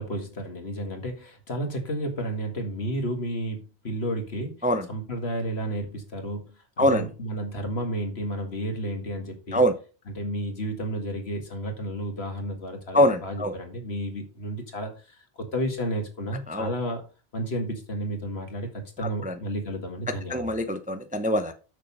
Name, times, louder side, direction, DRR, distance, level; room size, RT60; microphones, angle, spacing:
voice 1, 0.0-4.5 4.9-6.4 6.8-9.6 10.2-17.0 17.3-20.6, right 1 dB, 65° left, 4 dB, 2.2 m, -32 dB
voice 2, 12.9-13.5 16.5-16.7 19.3-19.4 20.3-21.5, equal, 10° right, 8 dB, 0.5 m, -23 dB
6.7 x 6.3 x 5.4 m, 0.34 s
omnidirectional pair, 1.2 m